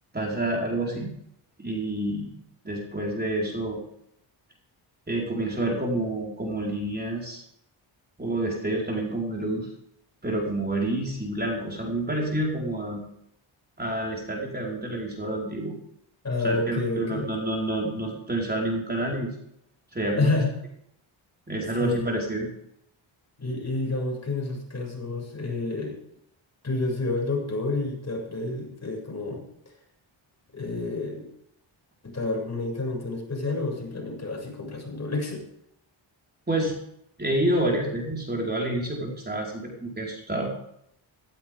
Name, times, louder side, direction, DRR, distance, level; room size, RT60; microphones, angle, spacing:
voice 1, 0.1-1.1 1.6-2.3 2.6-3.8 5.1-7.4 8.2-9.7 10.2-13.0 13.8-15.7 16.4-19.3 19.9-20.3 21.5-22.5 36.5-36.8 37.2-40.5, right 1 dB, 20° right, -2 dB, 4.8 m, -28 dB
voice 2, 16.2-17.3 20.2-20.5 21.8-22.1 23.4-26.0 26.6-29.4 30.5-31.3 32.0-35.4, left 2 dB, 35° left, 0 dB, 6.9 m, -29 dB
16.0 x 15.0 x 3.7 m, 0.73 s
cardioid pair, 80°, 47 cm